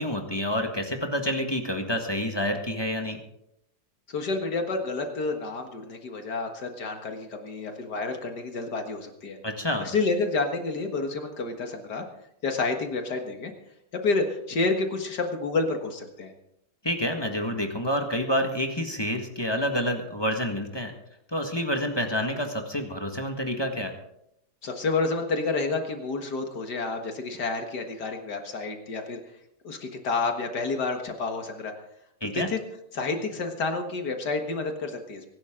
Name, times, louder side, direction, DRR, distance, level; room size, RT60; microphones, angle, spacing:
voice 1, 0.0-3.2 9.4-9.8 16.8-20.9 21.3-23.9 32.2-32.5, equal, 15° left, 4 dB, 1.6 m, -28 dB
voice 2, 4.1-9.4 9.8-12.0 12.4-13.5 13.9-16.3 24.6-29.2 29.6-31.7 32.3-32.6 32.9-35.2, left 3 dB, 70° left, 5 dB, 2.1 m, -29 dB
24.0 x 11.5 x 3.8 m, 0.79 s
omnidirectional pair, 1.9 m